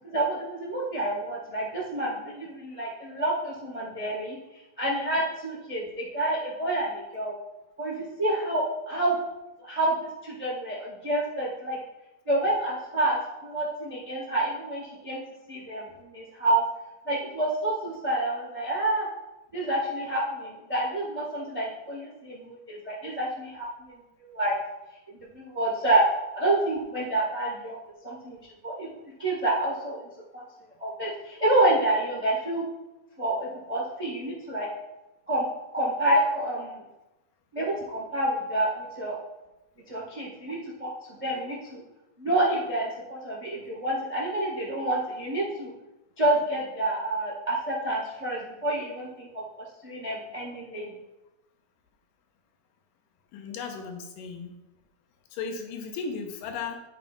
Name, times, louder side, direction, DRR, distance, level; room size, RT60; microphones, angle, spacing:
voice 1, 0.0-4.4 4.8-7.3 7.8-9.2 9.6-11.8 12.2-15.2 15.5-16.6 17.0-19.1 19.5-24.6 25.3-26.1 26.3-27.8 28.0-28.4 28.6-28.9 29.2-30.4 30.8-32.7 33.2-34.7 35.3-35.4 35.7-36.8 37.5-39.2 39.9-41.8 42.2-45.7 46.2-49.4 49.8-50.9, right 1 dB, 60° right, -4 dB, 0.3 m, -28 dB
voice 2, 53.3-54.5 55.3-56.8, left 5 dB, 80° left, 3 dB, 2.5 m, -35 dB
13.0 x 5.3 x 2.4 m, 0.99 s
omnidirectional pair, 4.0 m